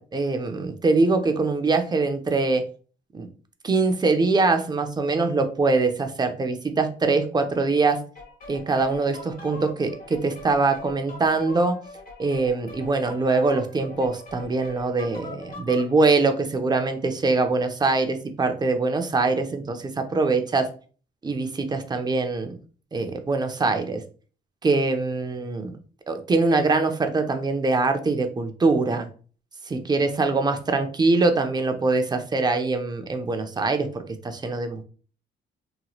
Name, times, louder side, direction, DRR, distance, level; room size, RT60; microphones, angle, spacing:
voice 1, 0.0-2.7 3.1-3.3 3.6-8.0 8.5-11.8 12.2-20.7 21.2-22.6 22.9-24.0 24.6-25.8 26.1-29.1 29.7-34.8, right 3 dB, 20° right, 6 dB, 0.5 m, -23 dB
sound 1, 8.2-15.9, left 2 dB, 45° left, 0.9 m, -42 dB
3.0 x 2.7 x 2.3 m, 0.41 s
cardioid pair, 90°, 20 cm